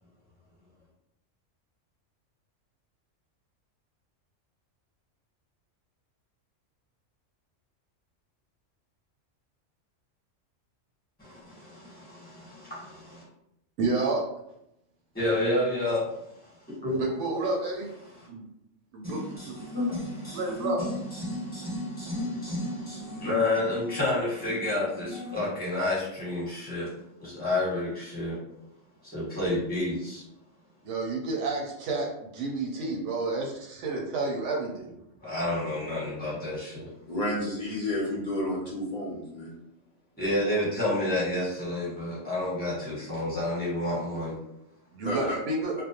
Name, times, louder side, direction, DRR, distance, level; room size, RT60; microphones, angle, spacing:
voice 1, 11.2-13.2 15.1-16.1 16.7-17.0 18.1-18.3 19.0-26.9 27.2-28.4 29.0-30.2 35.2-36.9 40.2-44.3, left 1 dB, 10° left, -8 dB, 1.0 m, -30 dB
voice 2, 13.8-14.3 17.0-17.9 18.3-18.5 18.9-19.6 20.3-20.8 30.8-34.9 44.9-45.7, right 3 dB, 75° right, -1 dB, 0.9 m, -30 dB
voice 3, 37.1-39.5 45.0-45.4, left 1 dB, 50° left, -5 dB, 0.5 m, -31 dB
2.4 x 2.0 x 2.8 m, 0.81 s
omnidirectional pair, 1.3 m